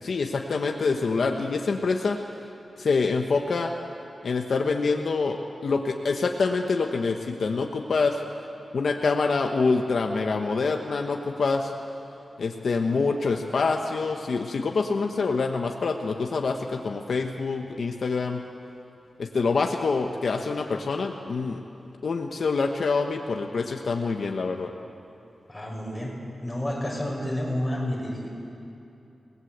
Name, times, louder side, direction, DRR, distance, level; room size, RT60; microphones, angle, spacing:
voice 1, 0.0-2.2 2.8-3.7 4.2-8.2 8.7-11.7 12.4-18.4 19.2-21.6 22.0-24.7, left 4 dB, 65° left, 3 dB, 1.2 m, -26 dB
voice 2, 25.5-26.1 26.4-28.3, left 1 dB, 10° left, -3 dB, 6.2 m, -30 dB
29.0 x 19.5 x 8.1 m, 2.8 s
wide cardioid pair, 150°, 0 cm